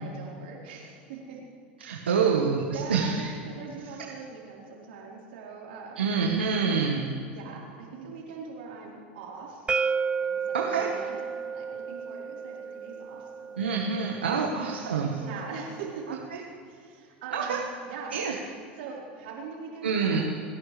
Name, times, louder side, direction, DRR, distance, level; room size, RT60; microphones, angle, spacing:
voice 1, 0.0-1.4 2.0-2.3 2.7-6.1 7.3-9.7 10.2-13.7 14.3-14.5 15.2-16.2 16.7-18.1 18.8-20.2, right 5 dB, 75° right, -3 dB, 4.3 m, -42 dB
voice 2, 1.8-3.3 6.0-7.1 10.5-10.9 13.6-15.2 16.3-16.4 17.3-17.6 18.1-18.3 19.8-20.2, right 5 dB, 90° right, -1 dB, 1.5 m, -26 dB
sound 1, 9.7-15.5, right 5 dB, 15° right, 0.3 m, -33 dB
30.0 x 11.0 x 3.4 m, 2.3 s
hypercardioid pair, 90°, 6 cm